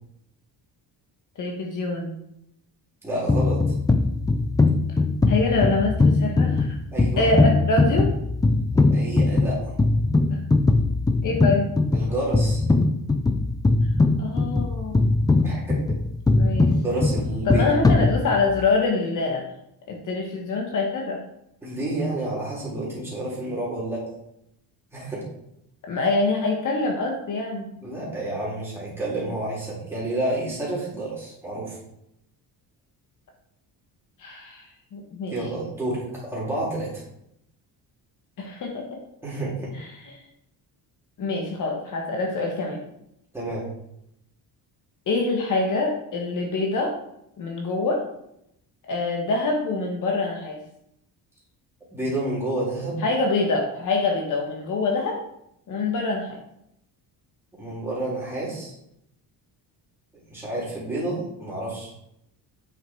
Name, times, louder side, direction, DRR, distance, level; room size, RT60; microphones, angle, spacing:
voice 1, 1.4-2.2 5.3-6.8 7.2-8.1 10.3-10.4 11.2-11.7 14.2-15.1 16.4-16.7 17.4-19.5 19.9-21.2 25.9-27.7 34.2-35.3 38.4-39.0 39.8-40.2 41.2-42.8 45.1-47.0 47.4-48.0 48.9-50.6 53.0-55.2 55.7-56.4, left 3 dB, 45° left, 1 dB, 1.4 m, -25 dB
voice 2, 3.0-3.6 6.9-7.3 8.7-9.8 11.9-12.6 15.4-15.8 16.8-17.6 21.6-24.0 24.9-25.2 27.8-31.8 35.3-37.0 39.2-39.7 43.3-43.7 51.9-53.0 57.6-58.7 60.3-61.9, right 1 dB, 5° right, -7 dB, 3.6 m, -29 dB
sound 1, 3.3-18.7, left 3 dB, 10° left, 0.3 m, -21 dB
9.2 x 5.7 x 4.6 m, 0.78 s
cardioid pair, 175°, 41 cm